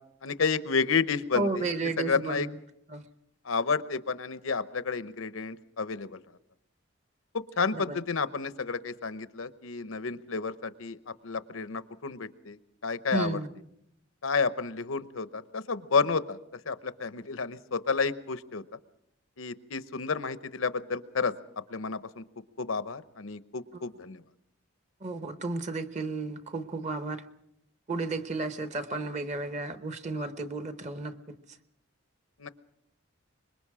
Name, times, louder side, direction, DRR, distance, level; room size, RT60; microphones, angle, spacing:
voice 1, 0.2-1.6 2.0-2.5 3.5-6.2 7.3-11.0 11.2-12.6 12.8-13.4 14.2-16.4 16.7-18.6 19.4-21.3 21.7-22.2 22.6-24.2 32.4-32.5, left 5 dB, 85° left, 13 dB, 0.9 m, -30 dB
voice 2, 1.3-2.6 2.9-3.0 7.7-8.0 13.1-13.5 23.7-23.8 25.0-27.3 27.9-31.2, right 3 dB, 35° right, 9 dB, 1.1 m, -33 dB
25.5 x 22.0 x 4.9 m, 0.79 s
head